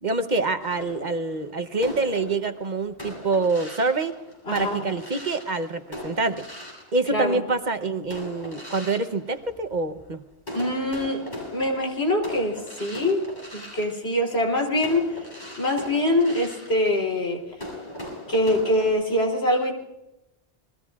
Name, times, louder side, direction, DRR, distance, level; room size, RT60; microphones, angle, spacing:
voice 1, 0.0-4.1 4.5-6.4 6.9-10.2, right 3 dB, 50° right, 8 dB, 1.0 m, -26 dB
sound 1, 0.6-7.5 8.1-10.1 10.4-18.9, left 1 dB, 45° left, 8.0 m, -39 dB
voice 2, 4.5-4.9 7.1-7.4 10.5-11.2 11.5-13.3 13.5-15.3 15.6-17.4 18.3-19.7, left 1 dB, 85° left, 0 dB, 3.6 m, -24 dB
28.5 x 21.0 x 2.4 m, 0.88 s
omnidirectional pair, 1.0 m